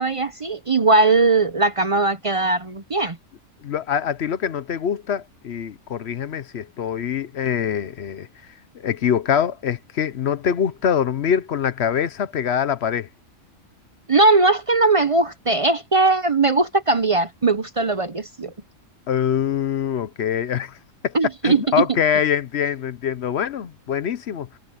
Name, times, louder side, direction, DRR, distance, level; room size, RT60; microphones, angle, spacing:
voice 1, 0.0-3.2 14.1-18.5 21.1-21.9, right 3 dB, 35° right, 0.6 m, -19 dB
voice 2, 3.6-8.3 8.7-13.1 19.1-20.8 21.0-21.1 21.4-24.5, left 8 dB, 55° left, 0.9 m, -24 dB
omnidirectional pair, 1.4 m